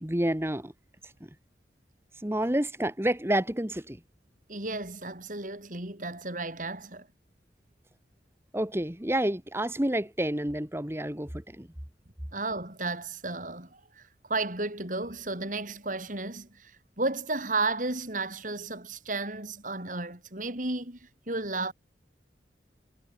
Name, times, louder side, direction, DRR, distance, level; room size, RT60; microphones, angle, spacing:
voice 1, 0.0-0.7 2.2-4.0 8.5-11.7, right 1 dB, 15° right, 1.5 m, -29 dB
voice 2, 4.5-7.1 12.3-21.7, right 3 dB, 45° right, 6.1 m, -33 dB
head